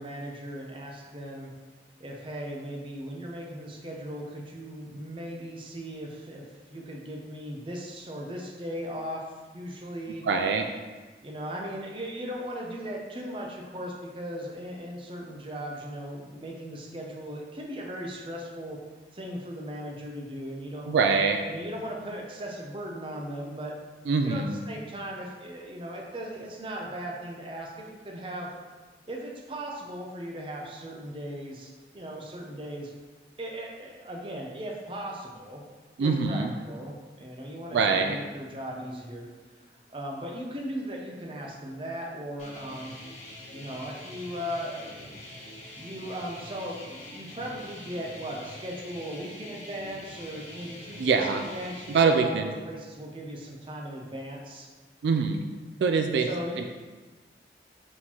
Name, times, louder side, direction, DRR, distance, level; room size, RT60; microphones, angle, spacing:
voice 1, 0.0-1.5 2.0-9.2 9.5-10.3 11.2-18.8 19.1-20.9 21.5-23.7 24.2-28.5 29.1-32.9 33.4-35.6 36.0-39.3 39.9-42.9 43.5-45.1 45.8-54.7 56.2-56.7, equal, 30° right, -1 dB, 0.6 m, -38 dB
voice 2, 10.2-10.7 20.9-21.4 24.1-24.6 36.0-36.5 37.7-38.2 51.0-51.4 51.9-52.5 55.0-55.4 55.8-56.3 56.6-56.7, right 5 dB, 80° right, 5 dB, 0.3 m, -24 dB
sound 1, 42.4-52.2, left 1 dB, 40° left, 0.9 m, -44 dB
4.2 x 3.8 x 2.9 m, 1.3 s
head